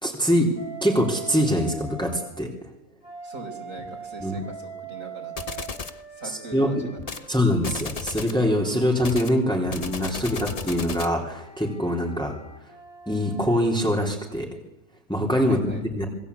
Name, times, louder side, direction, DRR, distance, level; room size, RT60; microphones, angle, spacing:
voice 1, 0.0-0.5 0.8-2.5 4.2-4.4 6.5-6.9 7.3-12.4 13.1-14.5 15.1-16.1, equal, 5° left, 0 dB, 3.8 m, -23 dB
Wind instrument woodwind instrument, 0.6-2.3 3.0-7.8 8.5-13.7, right 5 dB, 50° left, 4.4 m, -42 dB
voice 2, 3.2-5.8 6.1-7.3 15.4-15.8, right 2 dB, 55° right, 1 dB, 5.6 m, -42 dB
sound 1, 5.4-6.0 7.0-7.3 7.6-8.4 9.0-11.2, left 4 dB, 30° left, 0.8 m, -34 dB
26.5 x 21.5 x 8.5 m, 0.93 s
omnidirectional pair, 1.6 m